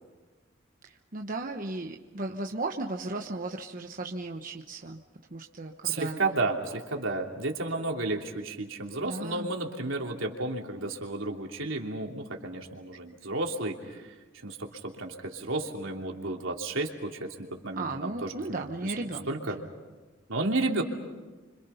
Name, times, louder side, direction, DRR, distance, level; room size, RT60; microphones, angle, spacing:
voice 1, 0.8-5.0 5.3-6.2 9.0-9.5 17.7-19.7, right 2 dB, 45° right, 2 dB, 1.1 m, -36 dB
voice 2, 5.8-19.6 20.3-20.8, right 2 dB, 85° right, 1 dB, 3.1 m, -32 dB
30.0 x 26.0 x 5.7 m, 1.2 s
head